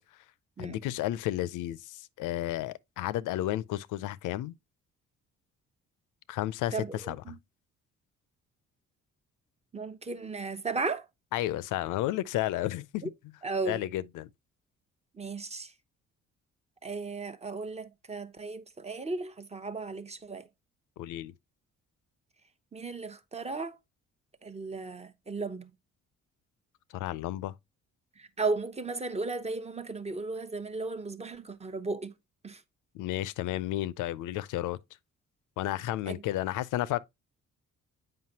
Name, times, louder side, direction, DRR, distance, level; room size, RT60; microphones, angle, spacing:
voice 1, 0.6-4.6 6.3-7.3 11.3-13.1 13.6-14.3 21.0-21.3 26.9-27.5 32.9-34.8 35.6-37.0, left 14 dB, 85° left, 0.5 m, -32 dB
voice 2, 6.7-7.4 9.7-11.1 13.0-13.1 13.4-13.8 15.2-15.7 16.8-20.5 22.7-23.8 24.4-25.7 28.2-32.1 32.4-32.6 36.1-36.2, right 3 dB, 20° right, 0.8 m, -35 dB
7.6 x 5.2 x 2.8 m
cardioid pair, 90°, 30 cm